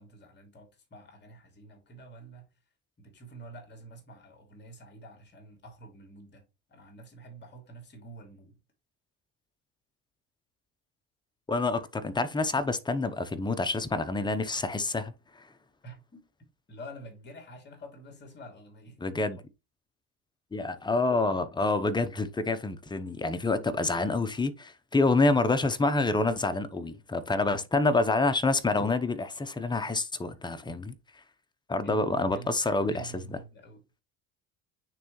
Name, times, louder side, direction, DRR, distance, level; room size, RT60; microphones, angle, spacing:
voice 1, 0.0-2.6 3.0-8.6 15.8-16.2 16.7-19.0 30.7-30.8 31.8-33.8, right 2 dB, 30° left, 2.7 m, -48 dB
voice 2, 11.5-15.5 19.0-19.4 20.5-30.9 31.7-33.4, left 3 dB, 15° left, 0.8 m, -27 dB
9.2 x 3.4 x 3.1 m
supercardioid pair, 95°, 35 cm